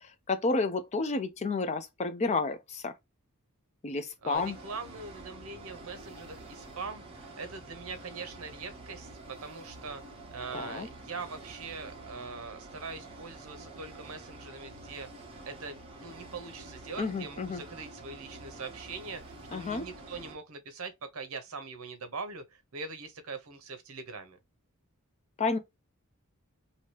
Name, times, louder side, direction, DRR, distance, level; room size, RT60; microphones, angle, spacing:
voice 1, 0.3-2.9 3.8-4.6 10.5-10.9 17.0-17.6 19.5-19.8 25.4-25.6, left 3 dB, 30° left, 0.4 m, -30 dB
voice 2, 4.2-10.0 10.3-24.4, right 4 dB, 70° right, 0.8 m, -42 dB
sound 1, 4.3-20.3, right 2 dB, 25° right, 1.0 m, -48 dB
2.9 x 2.8 x 3.1 m
head